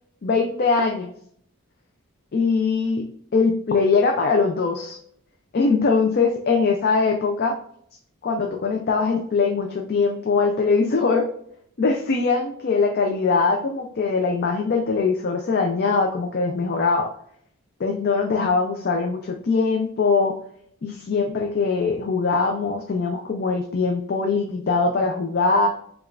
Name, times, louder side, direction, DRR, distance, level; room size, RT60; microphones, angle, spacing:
voice 1, 0.2-1.1 2.3-3.0 3.3-5.0 5.5-7.6 8.2-11.3 11.8-17.1 17.8-20.3 20.8-25.7, left 4 dB, 45° left, 3 dB, 0.4 m, -22 dB
4.8 x 2.4 x 2.4 m, 0.64 s
head